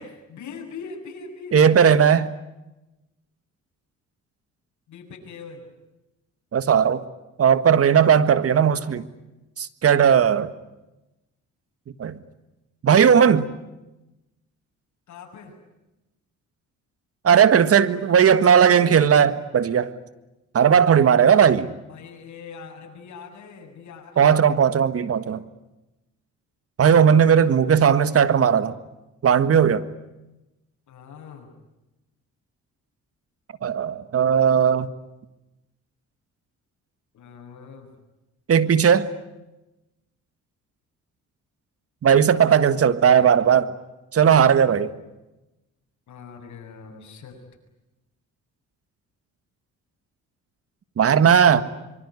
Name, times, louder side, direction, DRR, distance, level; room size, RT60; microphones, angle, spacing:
voice 1, 0.0-1.6 4.9-5.7 15.1-15.6 21.9-24.5 30.9-31.5 37.1-37.9 46.1-47.4 51.3-51.6, left 5 dB, 70° left, 2 dB, 7.4 m, -41 dB
voice 2, 1.5-2.3 6.5-7.0 7.4-9.0 9.6-10.5 12.0-12.2 12.8-13.5 17.2-19.9 20.5-21.7 24.2-25.4 26.8-28.7 29.2-29.8 33.6-34.9 38.5-39.1 42.0-43.7 44.1-44.9 51.0-51.6, right 7 dB, 50° right, 14 dB, 1.6 m, -17 dB
25.0 x 24.0 x 9.8 m, 0.99 s
cardioid pair, 90°, 30 cm